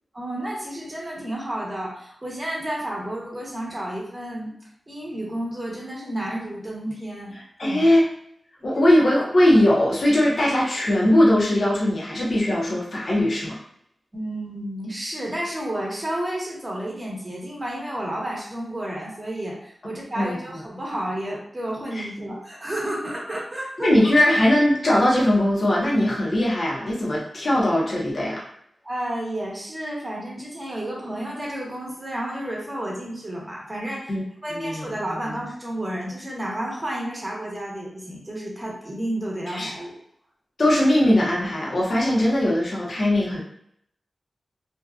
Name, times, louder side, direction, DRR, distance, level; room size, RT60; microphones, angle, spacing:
voice 1, 0.1-4.5 4.9-7.4 7.6-7.8 14.1-24.1 28.8-34.2 34.4-40.0, right 1 dB, 25° right, -4 dB, 0.9 m, -31 dB
voice 2, 7.6-8.0 8.6-13.6 20.1-20.4 21.9-22.1 23.8-28.4 34.1-34.2 34.5-34.9 39.5-39.7 40.6-43.4, left 1 dB, 55° left, -4 dB, 0.8 m, -20 dB
2.6 x 2.3 x 2.3 m, 0.69 s
wide cardioid pair, 80°, 0 cm